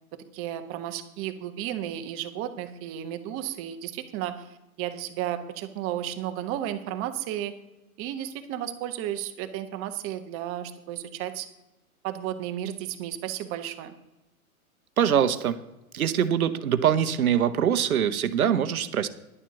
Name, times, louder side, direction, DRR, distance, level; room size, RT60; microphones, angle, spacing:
voice 1, 0.3-7.5 8.0-11.5 12.0-13.9, right 11 dB, 30° right, 9 dB, 1.1 m, -33 dB
voice 2, 15.0-15.6 15.9-19.1, right 9 dB, 70° right, 12 dB, 1.0 m, -23 dB
11.0 x 7.4 x 7.0 m, 0.96 s
figure-of-eight pair, 110°, 44 cm